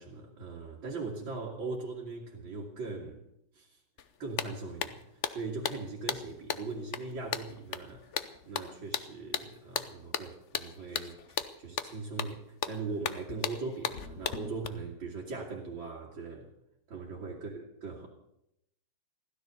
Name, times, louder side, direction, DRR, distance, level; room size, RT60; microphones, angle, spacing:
voice 1, 0.0-3.2 3.5-3.8 4.2-16.5 16.9-18.1, right 3 dB, 65° right, 3.0 m, -40 dB
sound 1, 4.0-4.1 4.4-14.7, left 8 dB, 65° left, 0.7 m, -36 dB
16.0 x 12.5 x 6.8 m
omnidirectional pair, 2.3 m